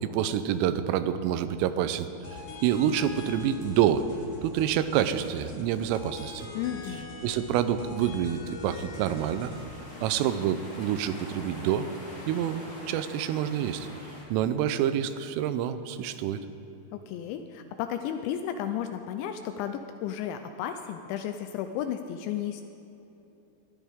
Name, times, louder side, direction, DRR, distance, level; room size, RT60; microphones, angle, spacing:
voice 1, 0.0-4.1 4.4-6.5 7.2-9.5 10.0-11.9 12.3-13.9 14.3-16.4, right 10 dB, 90° right, 11 dB, 3.3 m, -27 dB
sound 1, 2.2-9.6, left 3 dB, 50° left, 3.3 m, -43 dB
voice 2, 6.5-7.1 16.9-22.6, left 10 dB, 85° left, 7 dB, 2.7 m, -33 dB
sound 2, 8.8-14.2, left 1 dB, 25° left, 3.9 m, -45 dB
21.0 x 13.5 x 3.6 m, 3.0 s
omnidirectional pair, 5.7 m